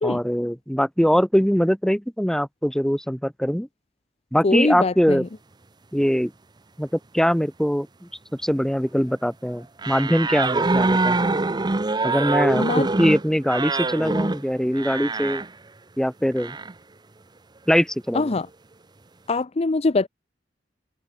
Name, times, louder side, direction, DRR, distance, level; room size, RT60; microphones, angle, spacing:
voice 1, 0.0-3.7 4.3-5.2 5.9-6.3 6.8-11.3 12.0-15.4 16.0-16.6 17.7-18.3, equal, 5° left, 1.3 m, -22 dB
voice 2, 4.4-5.3 12.5-12.9 18.1-18.5 19.3-20.1, left 3 dB, 35° left, 0.6 m, -22 dB
sound 1, 9.8-15.5 16.4-16.7, right 3 dB, 25° right, 0.7 m, -24 dB
head